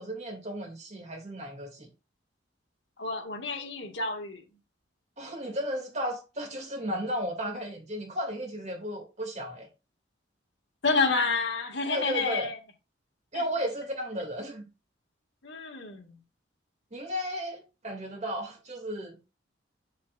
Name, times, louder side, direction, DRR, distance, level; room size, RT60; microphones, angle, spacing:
voice 1, 0.0-1.9 5.2-9.7 11.9-12.5 13.3-14.7 16.9-19.2, equal, 40° right, 2.4 m, -34 dB
voice 2, 3.0-4.4 10.8-12.6 13.3-13.4 15.4-16.1, left 4 dB, 70° left, 1.8 m, -29 dB
7.4 x 7.1 x 2.5 m
head